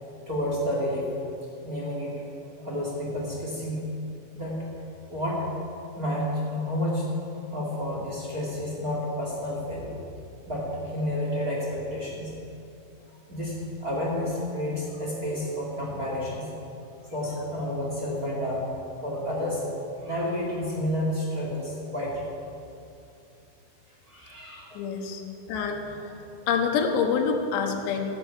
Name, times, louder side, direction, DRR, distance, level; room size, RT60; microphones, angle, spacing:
voice 1, 0.3-1.1 1.6-2.2 2.6-3.9 4.3-4.8 5.1-5.5 6.0-7.1 7.5-10.0 10.5-12.3 13.3-16.5 17.1-18.7 19.0-19.6 20.0-22.3 24.1-24.8, left 1 dB, 25° right, -4 dB, 2.2 m, -30 dB
voice 2, 24.7-25.2 25.5-28.1, left 6 dB, 90° left, 3 dB, 3.5 m, -27 dB
13.0 x 10.5 x 8.3 m, 2.6 s
omnidirectional pair, 4.8 m